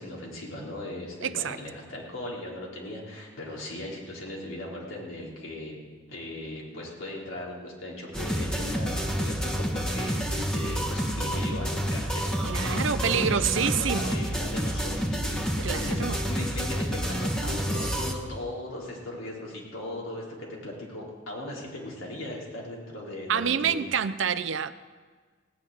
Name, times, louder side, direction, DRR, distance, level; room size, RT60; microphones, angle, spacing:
voice 1, 0.0-5.8 6.1-23.9, left 1 dB, 90° left, -3 dB, 3.8 m, -38 dB
voice 2, 1.2-1.6 12.4-14.2 15.6-16.2 23.3-24.7, right 7 dB, 75° right, 13 dB, 0.6 m, -27 dB
sound 1, 8.1-18.1, equal, 5° left, 1.3 m, -29 dB
17.0 x 6.5 x 9.3 m, 1.5 s
head